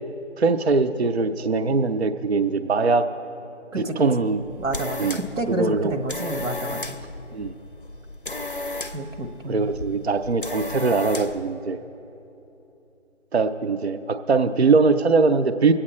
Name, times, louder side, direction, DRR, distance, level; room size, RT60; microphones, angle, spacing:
voice 1, 0.4-3.0 3.8-4.4 5.0-5.2 5.5-5.9 7.3-7.5 9.5-11.8 13.3-15.7, right 4 dB, 55° right, 10 dB, 0.5 m, -21 dB
voice 2, 3.7-7.0 8.9-9.7, right 1 dB, 85° right, 7 dB, 1.3 m, -30 dB
sound 1, 4.3-11.5, left 2 dB, 45° left, 0.6 m, -34 dB
22.0 x 8.7 x 4.3 m, 3.0 s
figure-of-eight pair, 175°, 38 cm